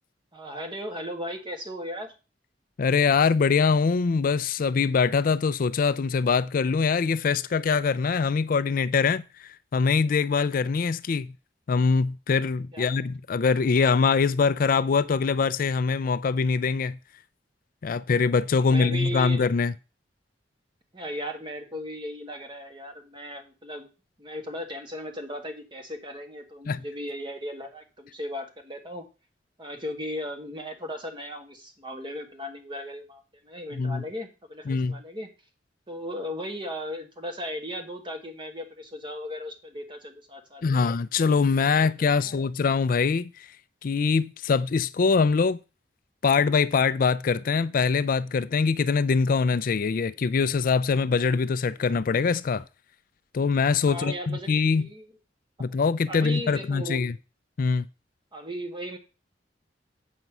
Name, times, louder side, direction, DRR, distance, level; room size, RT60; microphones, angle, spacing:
voice 1, 0.3-2.1 12.7-13.0 18.6-19.4 20.9-23.9 24.2-29.0 29.6-35.3 35.9-40.8 41.6-42.4 53.9-55.1 55.6-55.7 56.1-57.0 58.3-59.0, equal, 30° right, 1.6 m, -37 dB
voice 2, 2.8-11.3 11.7-17.0 17.8-19.7 26.7-26.8 33.7-34.0 34.7-35.0 40.6-43.5 43.8-45.6 46.2-52.6 53.3-54.9 55.6-57.1 57.6-57.9, left 5 dB, 50° left, 0.4 m, -23 dB
8.0 x 5.4 x 6.0 m
head